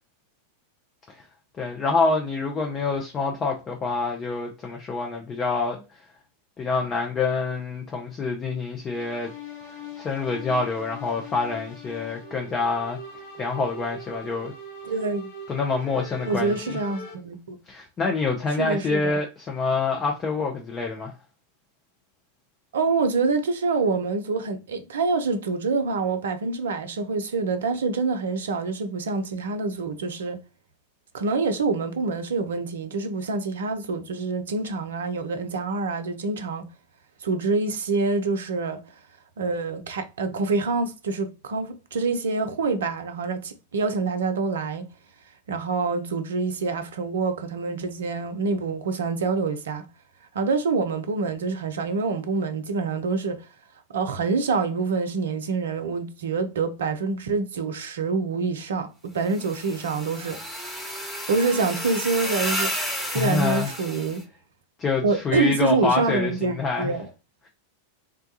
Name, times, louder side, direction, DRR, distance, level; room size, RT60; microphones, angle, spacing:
voice 1, 1.6-6.0 6.6-9.3 10.0-13.0 13.4-14.5 15.5-16.8 17.7-21.1 63.1-63.7 64.8-66.9, left 4 dB, 25° left, 0.6 m, -26 dB
sound 1, 8.9-17.2, left 1 dB, 55° left, 1.3 m, -41 dB
voice 2, 14.8-15.3 16.3-17.6 18.6-19.2 22.7-30.4 31.1-36.6 37.2-38.8 39.4-44.8 45.5-49.9 50.3-53.5 53.9-60.4 61.3-62.7 63.1-64.2 65.0-67.1, right 4 dB, 65° right, 0.5 m, -26 dB
sound 2, 59.3-64.2, equal, 5° left, 1.2 m, -32 dB
3.6 x 2.3 x 2.7 m
figure-of-eight pair, 90°, 0 cm